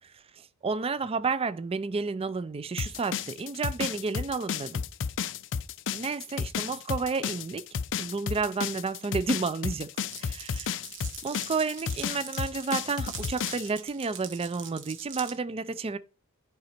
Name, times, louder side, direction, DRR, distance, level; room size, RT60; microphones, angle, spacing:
voice 1, 0.0-4.9 5.9-7.7 8.0-9.9 10.2-10.8 11.2-16.0, right 4 dB, 25° right, 0.4 m, -31 dB
sound 1, 2.8-13.7, left 7 dB, 55° left, 0.5 m, -32 dB
Glass, 10.1-15.4, right 8 dB, 55° right, 1.4 m, -42 dB
10.5 x 5.1 x 4.4 m
head